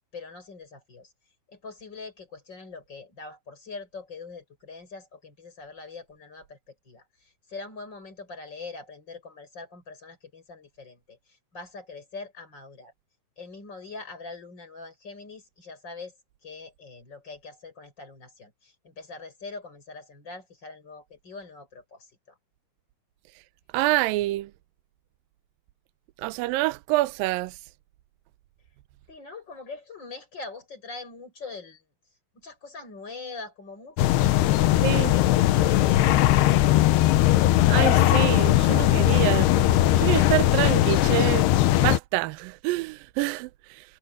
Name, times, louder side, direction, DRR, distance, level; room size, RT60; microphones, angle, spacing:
voice 1, 0.1-1.1 1.5-6.6 6.8-7.0 7.5-12.9 13.4-16.1 16.4-22.1 29.1-31.8 32.3-36.7, left 3 dB, 25° left, 7.7 m, -43 dB
voice 2, 23.7-24.5 26.2-27.5 34.8-35.1 37.7-39.7 40.0-41.5 41.8-43.8, right 19 dB, 80° right, 2.0 m, -26 dB
sound 1, 34.0-42.0, left 14 dB, 80° left, 2.9 m, -19 dB
omnidirectional pair, 4.8 m